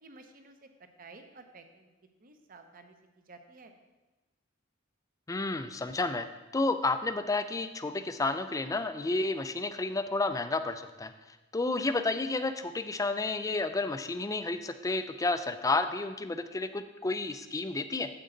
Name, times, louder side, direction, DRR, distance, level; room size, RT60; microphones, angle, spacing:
voice 1, 0.0-0.7 1.0-1.9 2.2-3.7, right 3 dB, 45° right, 7 dB, 0.8 m, -53 dB
voice 2, 5.3-6.3 6.5-11.1 11.5-18.1, left 3 dB, 15° left, 10 dB, 0.4 m, -31 dB
9.0 x 7.7 x 3.9 m, 1.1 s
head